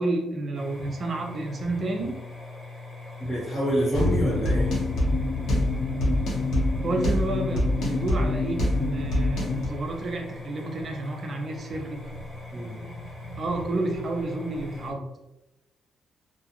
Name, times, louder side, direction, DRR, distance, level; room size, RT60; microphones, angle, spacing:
voice 1, 0.0-2.2 6.8-12.0 13.4-15.1, right 2 dB, 35° right, 1 dB, 0.5 m, -30 dB
sound 1, 0.5-14.9, left 1 dB, 10° right, 1.0 m, -40 dB
voice 2, 3.2-4.7 12.5-12.8, equal, 20° left, -8 dB, 1.2 m, -27 dB
sound 2, 3.9-9.7, left 1 dB, 85° left, 0.9 m, -25 dB
2.4 x 2.2 x 2.9 m, 0.97 s
cardioid pair, 165°, 0 cm